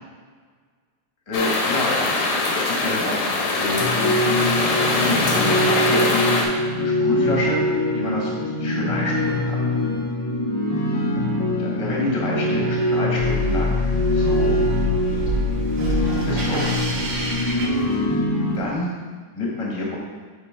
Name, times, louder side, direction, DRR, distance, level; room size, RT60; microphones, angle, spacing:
sound 1, 1.3-6.4, left 3 dB, 90° left, 2.7 m, -22 dB
voice 1, 1.3-2.2 2.5-4.1 4.6-6.3 6.7-7.6 7.9-9.6 11.6-14.6 15.9-16.7 18.6-20.0, left 2 dB, 30° left, -4 dB, 0.6 m, -28 dB
sound 2, 3.8-18.6, left 1 dB, 70° left, 0.6 m, -23 dB
sound 3, 13.2-18.5, left 2 dB, 65° right, 2.3 m, -26 dB
10.5 x 4.5 x 3.8 m, 1.5 s
omnidirectional pair, 3.7 m